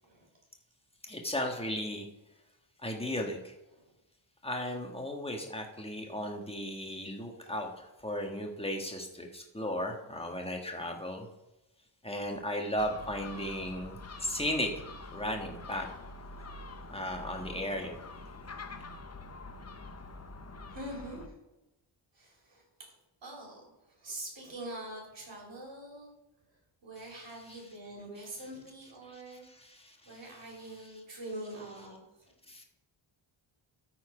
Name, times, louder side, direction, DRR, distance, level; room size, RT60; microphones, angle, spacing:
voice 1, 1.0-2.1 2.8-3.5 4.4-11.3 12.0-14.7 15.1-15.9 16.9-18.0 27.0-27.6 29.1-31.0 31.2-31.4 32.5-32.6, left 1 dB, 10° left, 2 dB, 1.5 m, -36 dB
Gull seagull, 12.8-21.3, left 2 dB, 30° left, 0.7 m, -46 dB
voice 2, 20.7-21.3 22.1-22.9 23.2-26.1 26.8-29.5 30.1-32.3, right 1 dB, 65° right, -2 dB, 3.5 m, -44 dB
13.0 x 4.5 x 4.9 m, 0.96 s
wide cardioid pair, 100°, 48 cm